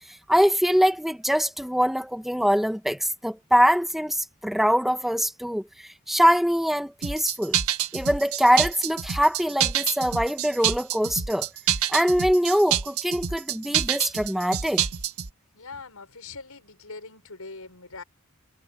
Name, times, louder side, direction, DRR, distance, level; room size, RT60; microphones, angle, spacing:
voice 1, 0.3-5.6 6.1-7.6 7.9-11.5 11.9-14.8, equal, ahead, 1.1 m, -23 dB
sound 1, 7.0-15.3, right 10 dB, 85° right, 1.4 m, -27 dB
voice 2, 15.5-18.0, left 4 dB, 80° left, 6.3 m, -42 dB
head